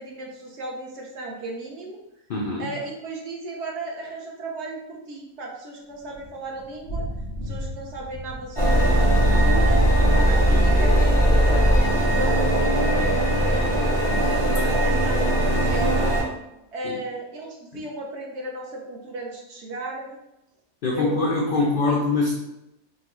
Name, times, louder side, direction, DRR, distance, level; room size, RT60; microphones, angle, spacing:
voice 1, 0.0-2.0 2.6-7.1 7.4-9.8 10.2-13.9 14.5-15.3 15.6-16.2 16.7-20.2 20.9-21.2 21.9-22.0, right 2 dB, 60° right, -1 dB, 0.7 m, -34 dB
voice 2, 2.3-2.7 10.5-10.7 14.1-14.2 16.8-17.0 20.8-22.4, left 3 dB, 85° left, -2 dB, 0.4 m, -24 dB
Thunder / Rain, 5.9-15.4, equal, 25° left, 0.4 m, -38 dB
sound 1, 8.6-16.2, right 1 dB, 30° right, 0.7 m, -19 dB
3.7 x 2.2 x 3.0 m, 0.88 s
omnidirectional pair, 1.5 m